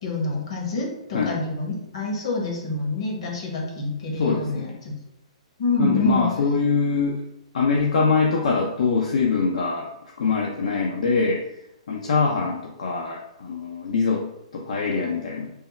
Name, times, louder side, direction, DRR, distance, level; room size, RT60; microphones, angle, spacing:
voice 1, 0.0-4.9 5.6-6.2, left 2 dB, 60° left, -1 dB, 1.2 m, -27 dB
voice 2, 4.2-4.8 5.8-7.2 7.5-9.9 10.2-11.5 11.9-14.2 14.5-15.5, left 4 dB, 75° left, -1 dB, 0.5 m, -23 dB
3.4 x 2.1 x 4.2 m, 0.82 s
hypercardioid pair, 145°, 4 cm